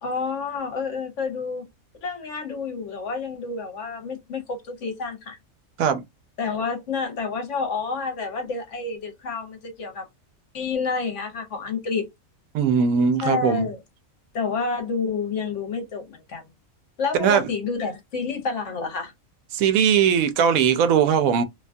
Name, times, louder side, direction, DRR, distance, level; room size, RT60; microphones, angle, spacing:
voice 1, 0.0-1.7 2.0-5.4 6.4-10.1 10.5-12.1 13.2-13.8 14.3-16.5 17.0-19.1, left 4 dB, 65° left, 1.1 m, -29 dB
voice 2, 12.5-13.7 17.2-17.5 19.5-21.4, right 7 dB, 90° right, 1.0 m, -19 dB
2.8 x 2.3 x 2.5 m
omnidirectional pair, 1.4 m